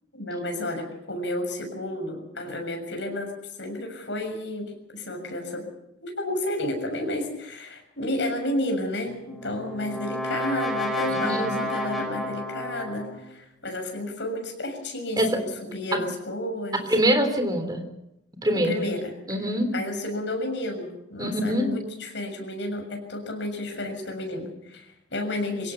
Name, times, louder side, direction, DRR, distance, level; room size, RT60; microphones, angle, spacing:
voice 1, 0.1-3.3 3.6-5.6 6.0-16.9 18.6-19.1 19.7-25.7, left 1 dB, 65° left, 3 dB, 6.8 m, -31 dB
Brass instrument, 9.1-13.3, left 1 dB, ahead, 5.1 m, -31 dB
voice 2, 11.1-11.5 15.2-15.4 15.9-16.0 16.9-17.8 18.4-18.8 19.3-19.7 21.2-21.7, equal, 20° right, 6 dB, 3.5 m, -24 dB
24.5 x 17.5 x 7.1 m, 0.84 s
head